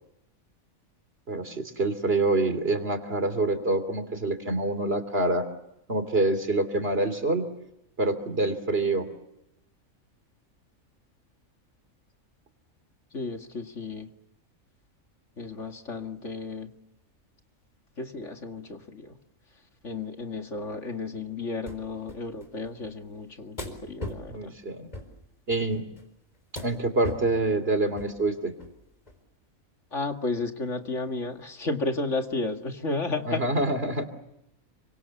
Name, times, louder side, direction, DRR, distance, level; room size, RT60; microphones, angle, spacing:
voice 1, 1.3-5.4 5.9-7.5 8.0-9.1 24.3-24.9 25.5-25.9 26.6-28.5 33.2-34.1, right 2 dB, 45° right, 10 dB, 3.3 m, -26 dB
voice 2, 13.1-14.1 15.4-16.7 18.0-19.2 19.8-24.5 29.9-33.7, left 3 dB, 60° left, 5 dB, 2.5 m, -33 dB
sound 1, 21.7-21.8 22.1-22.9 23.6-24.3 24.9-25.1 25.5-26.0 26.6-26.8 27.0-27.3 28.0-28.2 28.6-28.8 29.1-29.2, left 1 dB, 30° left, 4.6 m, -38 dB
30.0 x 25.0 x 7.2 m, 0.83 s
omnidirectional pair, 1.4 m